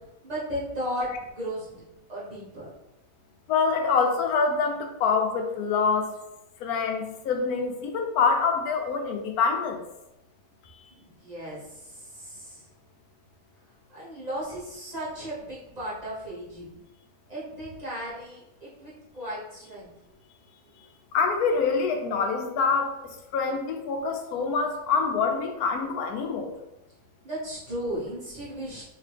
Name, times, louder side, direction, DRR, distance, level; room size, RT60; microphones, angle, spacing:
voice 1, 0.2-1.1 1.3-1.7 2.1-2.7 10.9-12.6 13.9-16.7 17.3-19.9 27.2-28.8, equal, 30° right, -8 dB, 1.0 m, -35 dB
voice 2, 3.5-6.1 6.6-9.8 21.1-26.5, left 5 dB, 85° left, 4 dB, 1.1 m, -25 dB
2.9 x 2.9 x 3.3 m, 0.89 s
omnidirectional pair, 1.5 m